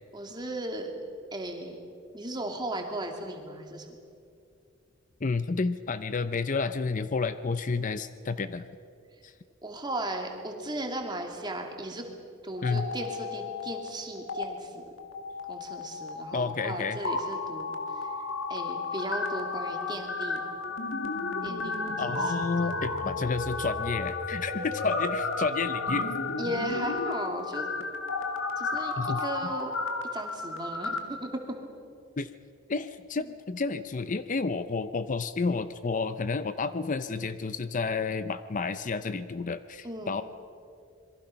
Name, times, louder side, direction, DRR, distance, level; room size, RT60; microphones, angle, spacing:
voice 1, 0.1-0.9 1.3-1.8 2.1-3.9 9.6-12.1 12.4-14.9 15.5-17.8 18.5-20.4 21.4-22.7 23.0-23.2 26.4-27.7 28.6-29.7 30.1-31.6 39.8-40.2, right 1 dB, 20° right, 2 dB, 2.6 m, -36 dB
voice 2, 5.2-8.7 9.2-9.3 12.6-12.9 16.3-17.0 22.0-26.1 29.0-29.2 32.2-32.3 32.7-40.2, left 4 dB, 40° left, 12 dB, 0.6 m, -30 dB
sound 1, 12.5-13.9 14.2-14.4 15.0-31.0, left 3 dB, 80° left, 2.2 m, -33 dB
26.5 x 22.0 x 5.8 m, 2.5 s
head